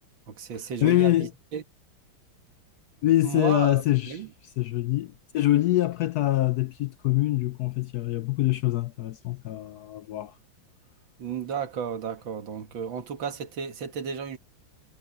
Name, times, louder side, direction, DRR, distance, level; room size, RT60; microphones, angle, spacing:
voice 1, 0.3-1.6 3.2-4.3 11.2-14.4, right 7 dB, 75° right, 2.4 m, -33 dB
voice 2, 0.8-1.3 3.0-4.2 4.6-10.4, left 15 dB, 80° left, 0.8 m, -24 dB
omnidirectional pair, 2.1 m